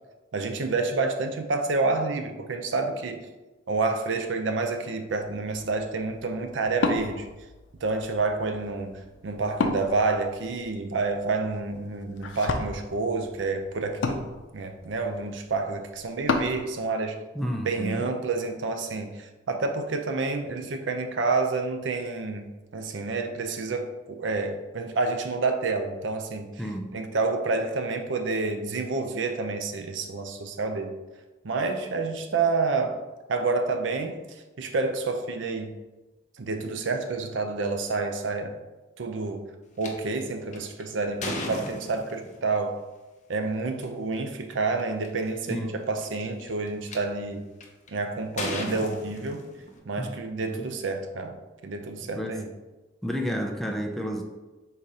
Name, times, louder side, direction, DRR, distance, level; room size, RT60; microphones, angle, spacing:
voice 1, 0.3-3.3 3.7-7.3 7.8-17.2 17.6-26.5 26.9-31.0 31.4-33.0 33.3-35.8 36.4-38.5 39.0-39.5 39.8-42.8 43.3-47.5 47.9-49.5 49.9-52.5, right 3 dB, 70° right, 6 dB, 0.5 m, -29 dB
Wood, 5.1-16.6, left 3 dB, 80° left, 0.5 m, -34 dB
voice 2, 17.3-18.1 26.6-26.9 45.5-45.8 50.0-50.1 50.4-50.7 52.1-52.4 53.0-54.2, equal, ahead, 1 dB, 0.4 m, -31 dB
sound 1, 39.8-39.9 40.5-42.4 43.7-43.8 44.5-44.6 44.8-45.2 46.0-47.0 47.6-47.9 48.4-49.8, left 2 dB, 40° left, 0.6 m, -35 dB
4.0 x 2.8 x 4.7 m, 1.1 s
head